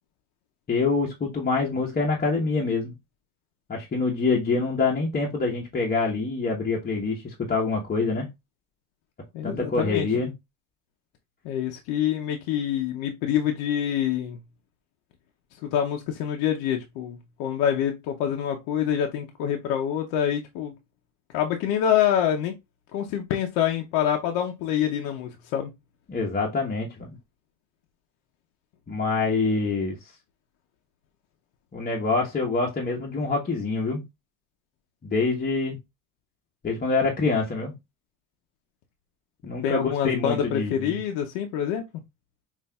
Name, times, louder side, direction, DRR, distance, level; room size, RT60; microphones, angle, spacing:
voice 1, 0.7-3.0 3.7-8.3 9.4-10.3 26.1-27.1 28.9-30.0 31.7-34.0 35.0-35.8 36.6-37.7 39.4-41.0, left 3 dB, 25° left, 0.9 m, -25 dB
voice 2, 9.3-10.1 11.4-14.4 15.6-20.7 21.3-22.5 22.9-25.7 39.6-41.8, left 9 dB, 80° left, 0.6 m, -26 dB
5.3 x 2.5 x 2.2 m
supercardioid pair, 90°, 37 cm